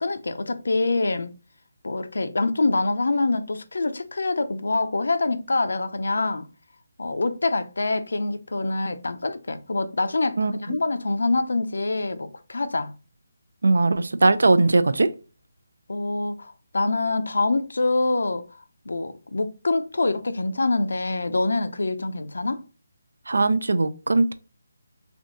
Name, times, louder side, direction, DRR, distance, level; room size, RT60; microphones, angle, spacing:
voice 1, 0.0-1.3 1.8-6.5 7.0-12.9 15.9-22.6, left 2 dB, 80° left, 0.6 m, -25 dB
voice 2, 13.6-15.1 23.3-24.3, right 3 dB, 85° right, 0.4 m, -19 dB
3.5 x 2.7 x 3.8 m
hypercardioid pair, 170°, 0 cm